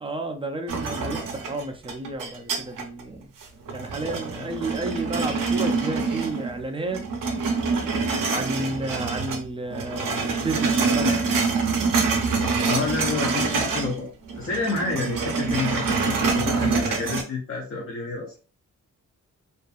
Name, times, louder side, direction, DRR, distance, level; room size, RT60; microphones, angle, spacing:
voice 1, 0.0-3.3 3.7-7.0 8.3-11.4, right 2 dB, 20° right, 4 dB, 0.3 m, -32 dB
sound 1, 0.7-3.0 3.4-6.6 6.9-9.4 9.7-14.0 14.2-17.2, right 4 dB, 85° right, 0.6 m, -25 dB
voice 2, 12.4-14.1 14.4-18.3, left 4 dB, 45° left, -1 dB, 0.5 m, -29 dB
2.5 x 2.4 x 2.3 m, 0.36 s
wide cardioid pair, 130°, 31 cm